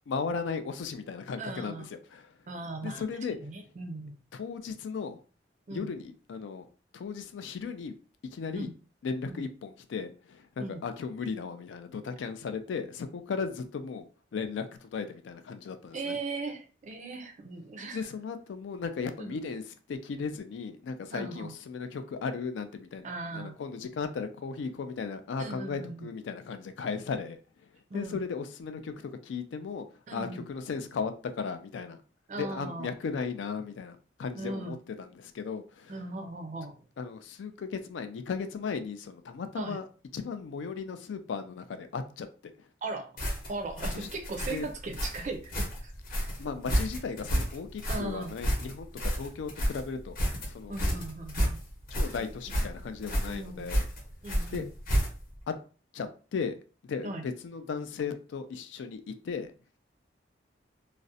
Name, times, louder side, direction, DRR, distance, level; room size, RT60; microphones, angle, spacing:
voice 1, 0.1-1.8 2.1-2.3 2.8-3.4 4.3-5.2 5.7-6.7 6.9-7.9 8.3-8.7 9.0-16.2 17.9-23.1 23.3-27.4 27.9-28.9 29.2-29.9 30.1-32.0 32.3-36.0 37.0-39.9 40.1-42.3 43.9-44.1 44.5-44.7 46.4-50.2 50.4-50.8 51.9-53.8 54.5-54.7 55.5-55.6 55.9-56.6 56.8-59.5, left 5 dB, 75° left, 9 dB, 0.3 m, -36 dB
voice 2, 1.4-1.9 2.5-3.0 3.4-4.2 5.7-5.9 8.5-8.7 9.3-9.5 10.6-10.8 15.9-18.1 19.2-19.3 21.1-21.5 23.0-23.6 25.4-26.1 27.9-28.2 30.1-30.4 32.3-32.9 34.4-34.8 35.9-36.8 39.6-39.8 42.8-43.1 43.5-45.9 47.9-48.4 50.7-51.6 52.1-52.3 53.2-53.7 54.2-54.7 57.0-57.2, right 2 dB, 40° right, 5 dB, 0.4 m, -38 dB
sound 1, 43.2-55.4, equal, 50° left, 0.8 m, -31 dB
2.4 x 2.0 x 2.6 m, 0.37 s
head